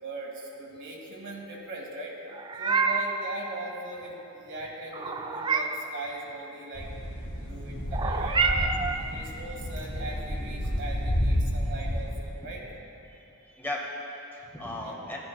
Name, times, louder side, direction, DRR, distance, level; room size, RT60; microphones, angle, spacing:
voice 1, 0.0-2.2 2.5-8.7 9.1-12.6 14.8-14.9, right 1 dB, 55° right, -2 dB, 1.7 m, -39 dB
Meow, 2.3-3.2 4.9-5.9 7.9-9.0, right 4 dB, 20° right, 0.3 m, -27 dB
sound 1, 6.7-12.2, equal, 85° left, 1.7 m, -30 dB
voice 2, 7.3-8.0 8.8-9.4 9.9-10.0 13.1-15.2, left 1 dB, 10° left, -3 dB, 1.0 m, -39 dB
16.0 x 9.5 x 2.2 m, 3.0 s
head